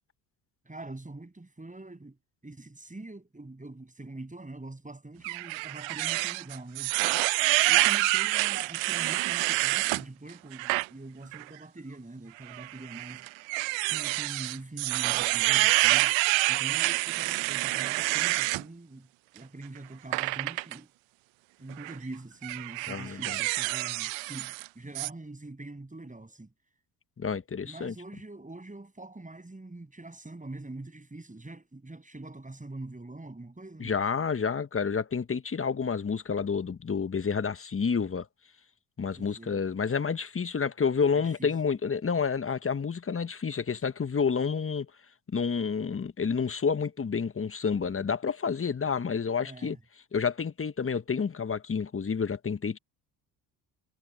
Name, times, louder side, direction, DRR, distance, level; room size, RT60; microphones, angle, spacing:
voice 1, 0.6-2.2 2.4-6.9 7.7-13.3 13.9-16.1 16.5-19.1 19.3-20.9 21.6-26.5 27.6-34.0 39.2-39.6 41.1-41.6 49.4-49.8, right 2 dB, 15° right, 7.2 m, -44 dB
sound 1, 5.2-10.0 10.5-10.9 11.3-11.4 12.5-18.6 20.1-20.8 21.7-22.0 22.4-24.7 25.0-25.1, right 24 dB, 70° right, 0.7 m, -27 dB
voice 2, 22.9-23.4 27.2-27.9 33.8-38.3 39.0-44.9 45.3-49.8 50.1-52.8, left 6 dB, 25° left, 1.3 m, -29 dB
hypercardioid pair, 55°, 49 cm